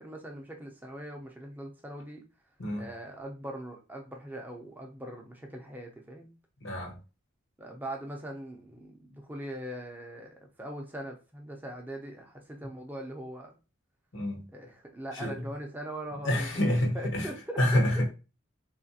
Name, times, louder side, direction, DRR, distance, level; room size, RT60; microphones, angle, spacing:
voice 1, 0.0-2.2 2.8-6.3 7.6-13.6 14.5-18.0, right 1 dB, 10° right, 0.5 m, -41 dB
voice 2, 6.6-7.0 14.1-14.5 15.1-15.4 16.2-17.3 17.6-18.0, left 1 dB, 65° left, 0.9 m, -27 dB
3.8 x 2.4 x 2.6 m
head